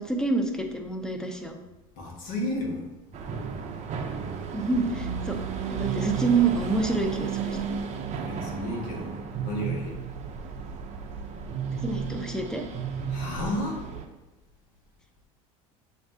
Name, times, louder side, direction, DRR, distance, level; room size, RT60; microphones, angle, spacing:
voice 1, 0.0-1.6 4.5-5.4 5.7-7.7 11.8-12.6, right 3 dB, 5° left, 3 dB, 0.6 m, -27 dB
voice 2, 2.0-2.9 8.1-10.0 13.1-13.8, left 1 dB, 55° left, 0 dB, 1.3 m, -32 dB
sound 1, 3.1-14.0, right 6 dB, 40° right, 0.6 m, -33 dB
7.2 x 2.6 x 2.6 m, 1.0 s
hypercardioid pair, 85°, 17 cm